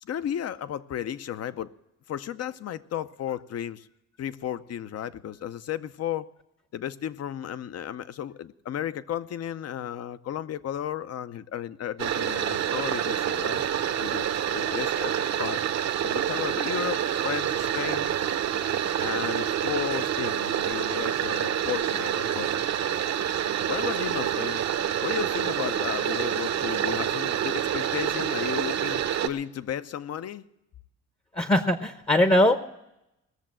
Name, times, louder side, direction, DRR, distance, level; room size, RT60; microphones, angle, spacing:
voice 1, 0.0-1.7 2.1-3.9 4.2-6.3 6.7-13.6 14.0-15.6 16.0-18.1 19.0-22.5 23.7-24.7 25.0-30.4, left 10 dB, 55° left, 0.7 m, -34 dB
sound 1, 12.0-29.3, right 10 dB, 60° right, 0.9 m, -27 dB
voice 2, 31.4-32.6, left 1 dB, 20° left, 0.8 m, -21 dB
19.0 x 6.9 x 7.5 m
cardioid pair, 90°, 30 cm